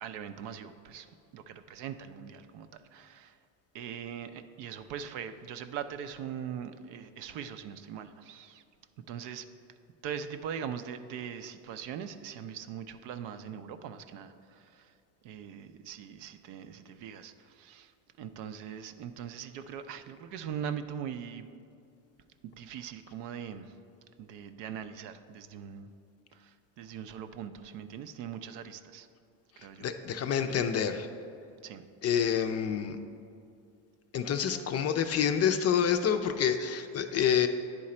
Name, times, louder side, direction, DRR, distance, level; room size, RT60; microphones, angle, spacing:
voice 1, 0.0-3.4 3.7-8.6 9.1-9.5 10.0-14.9 15.2-17.9 18.2-21.5 22.4-23.8 24.2-25.9 26.3-29.1 29.6-29.9 31.6-31.9, right 8 dB, 70° right, 10 dB, 0.6 m, -41 dB
voice 2, 29.8-31.1 32.0-33.0 34.1-37.5, left 8 dB, 35° left, 8 dB, 0.4 m, -27 dB
9.8 x 3.8 x 4.2 m, 2.5 s
supercardioid pair, 95°, 44 cm